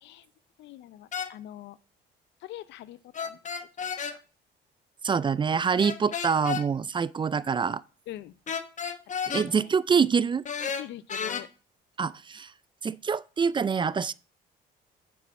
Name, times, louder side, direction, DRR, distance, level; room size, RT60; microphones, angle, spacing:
voice 1, 0.6-1.8 2.4-3.9 8.1-8.3 9.3-9.7 10.8-11.5, left 13 dB, 75° left, 0.6 m, -44 dB
sound 1, 1.1-1.3 3.1-4.2 5.8-6.6 8.5-9.5 10.4-11.4, left 6 dB, 40° left, 1.0 m, -32 dB
voice 2, 5.0-7.8 9.3-10.4 12.0-12.5 12.8-14.1, right 6 dB, 25° right, 0.4 m, -25 dB
6.0 x 6.0 x 7.0 m
cardioid pair, 85°, 19 cm